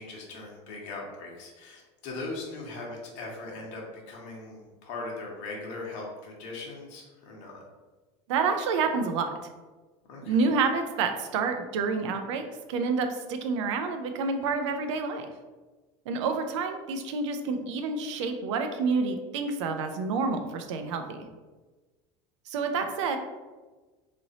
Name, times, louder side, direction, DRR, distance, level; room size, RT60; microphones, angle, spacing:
voice 1, 0.0-7.6 10.1-10.4, left 3 dB, 60° left, -2 dB, 1.1 m, -39 dB
voice 2, 8.3-9.3 10.2-15.3 16.1-21.3 22.5-23.2, right 4 dB, 85° right, 6 dB, 0.5 m, -28 dB
3.1 x 2.6 x 4.0 m, 1.3 s
supercardioid pair, 115°, 15 cm